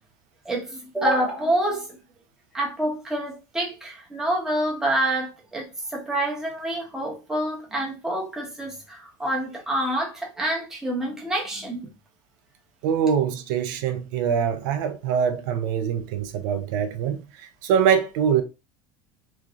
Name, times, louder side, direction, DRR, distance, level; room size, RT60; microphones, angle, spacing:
voice 1, 0.4-2.0 2.5-11.9, right 1 dB, 5° right, 0.8 m, -27 dB
voice 2, 12.8-18.4, right 7 dB, 70° right, 0.5 m, -24 dB
3.0 x 2.5 x 2.4 m
cardioid pair, 160°, 11 cm